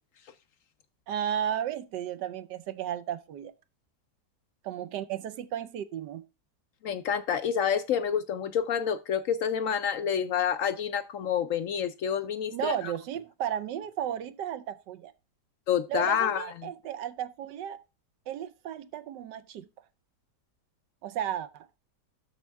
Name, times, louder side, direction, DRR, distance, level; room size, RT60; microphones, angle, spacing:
voice 1, 1.1-3.5 4.6-6.2 12.5-15.1 15.9-17.8 18.3-19.7 21.0-21.7, right 10 dB, 85° right, 1.3 m, -34 dB
voice 2, 6.8-12.9 15.7-16.7, left 8 dB, 70° left, 0.8 m, -28 dB
12.5 x 4.3 x 3.4 m
omnidirectional pair, 1.8 m